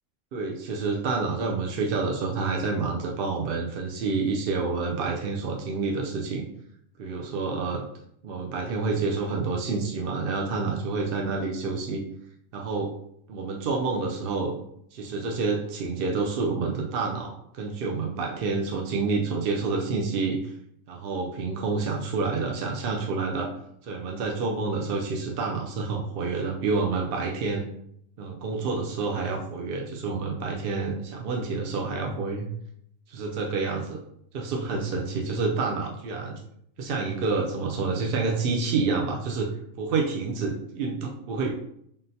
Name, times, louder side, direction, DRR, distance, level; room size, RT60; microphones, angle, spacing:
voice 1, 0.3-6.5 7.0-7.8 8.2-12.0 12.5-12.9 13.3-14.5 14.9-20.5 20.9-23.5 23.8-27.7 28.2-32.5 33.1-34.0 34.3-36.3 36.8-39.5 39.8-41.5, right 4 dB, 65° right, 0 dB, 0.6 m, -28 dB
3.9 x 3.7 x 2.7 m, 0.73 s
omnidirectional pair, 1.4 m